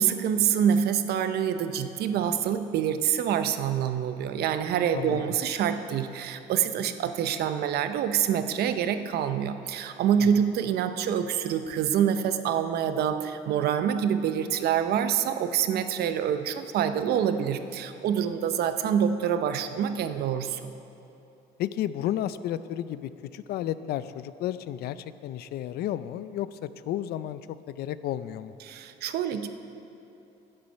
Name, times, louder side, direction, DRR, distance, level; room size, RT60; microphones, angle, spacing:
voice 1, 0.0-20.7 28.6-29.5, right 8 dB, 70° right, 9 dB, 0.7 m, -26 dB
voice 2, 21.6-27.4 27.7-28.5, left 11 dB, 70° left, 14 dB, 0.4 m, -32 dB
11.5 x 8.8 x 5.6 m, 2.9 s
cardioid pair, 110°, 17 cm